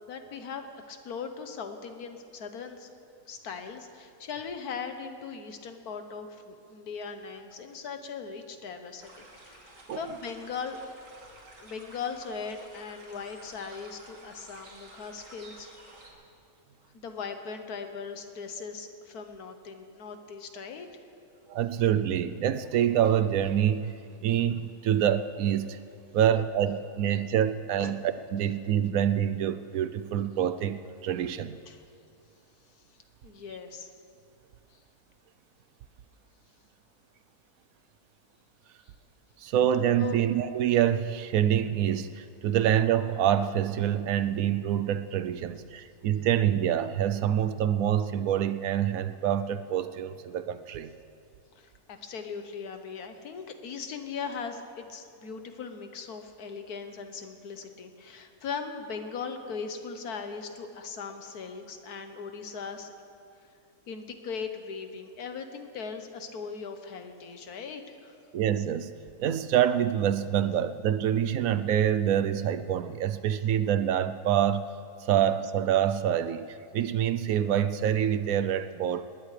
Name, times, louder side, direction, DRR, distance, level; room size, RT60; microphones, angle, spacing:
voice 1, 0.1-2.9 3.3-9.6 9.9-10.8 11.6-15.7 16.9-20.9 27.8-27.9 31.7-31.8 33.2-33.9 34.7-34.8 40.0-40.2 51.6-62.9 63.9-68.1, left 5 dB, 85° left, 7 dB, 1.6 m, -39 dB
sound 1, 9.0-16.1, right 2 dB, 55° right, 2.3 m, -52 dB
voice 2, 21.5-23.9 24.2-25.8 26.1-31.6 39.4-50.9 68.3-68.9 69.2-74.7 75.0-79.0, right 10 dB, 70° right, 12 dB, 1.0 m, -26 dB
20.0 x 18.5 x 3.3 m, 2.4 s
omnidirectional pair, 1.6 m